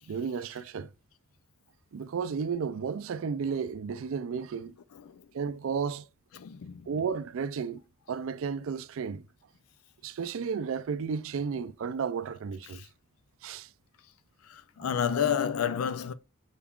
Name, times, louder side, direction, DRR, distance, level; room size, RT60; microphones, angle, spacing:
voice 1, 0.1-0.9 1.9-4.7 5.3-6.1 6.9-7.8 8.1-9.2 10.0-12.9 13.4-13.7, right 6 dB, 65° right, 0.3 m, -33 dB
voice 2, 6.3-6.9 12.7-12.9 14.4-16.1, left 8 dB, 80° left, 0.4 m, -30 dB
5.7 x 3.5 x 2.3 m
head